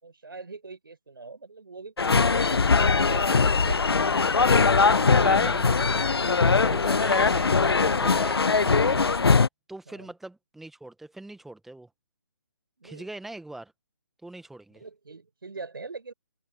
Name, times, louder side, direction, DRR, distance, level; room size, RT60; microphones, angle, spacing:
voice 1, 0.0-3.8 4.2-5.9 9.9-10.1 12.8-13.1 14.7-16.1, right 4 dB, 65° right, 5.2 m, -42 dB
sound 1, 2.0-9.5, left 4 dB, 80° left, 0.4 m, -21 dB
voice 2, 5.2-5.7 6.3-9.2 9.7-11.9 12.8-13.7 14.2-14.8, right 2 dB, ahead, 1.7 m, -41 dB
figure-of-eight pair, 145°, 13 cm